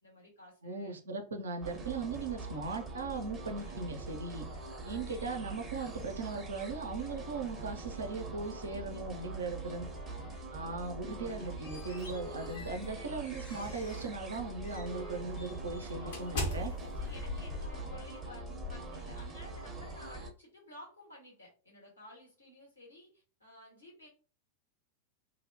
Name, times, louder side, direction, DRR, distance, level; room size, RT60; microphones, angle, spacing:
voice 1, 0.0-1.0 4.5-5.1 7.0-7.1 8.6-9.1 10.3-10.6 11.9-12.1 16.0-24.1, left 1 dB, 80° left, 1.4 m, -54 dB
voice 2, 0.6-4.5 4.8-9.9 10.5-16.7, right 4 dB, 70° right, 0.5 m, -38 dB
sound 1, 1.6-20.3, right 3 dB, 20° right, 0.6 m, -43 dB
Wind instrument woodwind instrument, 9.4-14.1 14.7-18.7, left 4 dB, 25° left, 0.6 m, -54 dB
sound 2, 11.2-14.2 14.6-14.9 15.3-19.5, left 2 dB, 55° left, 0.8 m, -41 dB
2.6 x 2.1 x 2.7 m
figure-of-eight pair, 90°, 0 cm